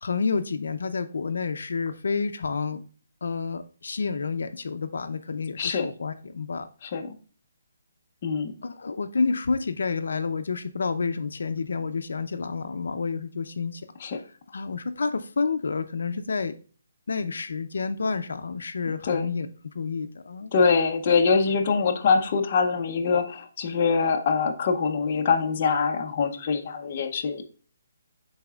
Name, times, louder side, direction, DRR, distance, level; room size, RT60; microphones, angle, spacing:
voice 1, 0.0-2.8 3.2-6.7 8.6-13.8 14.5-16.6 17.1-19.5 19.7-20.5, left 4 dB, 70° left, 9 dB, 0.5 m, -29 dB
voice 2, 8.2-8.5 14.0-14.2 19.0-19.3 20.5-27.5, left 5 dB, 25° left, 3 dB, 0.6 m, -24 dB
10.5 x 4.1 x 2.3 m, 0.39 s
hypercardioid pair, 180°, 0 cm